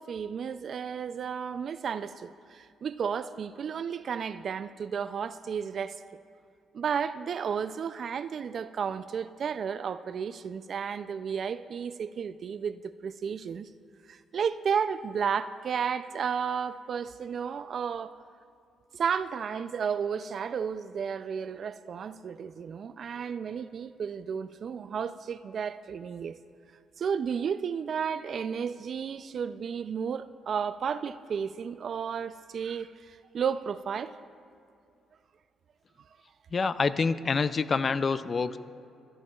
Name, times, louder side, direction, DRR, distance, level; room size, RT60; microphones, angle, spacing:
voice 1, 0.0-6.0 6.7-13.7 14.1-18.1 18.9-26.4 27.0-34.2, right 7 dB, 55° right, 0.3 m, -33 dB
voice 2, 36.5-38.6, left 4 dB, 40° left, 0.3 m, -27 dB
14.5 x 10.5 x 2.3 m
cardioid pair, 90°, 0 cm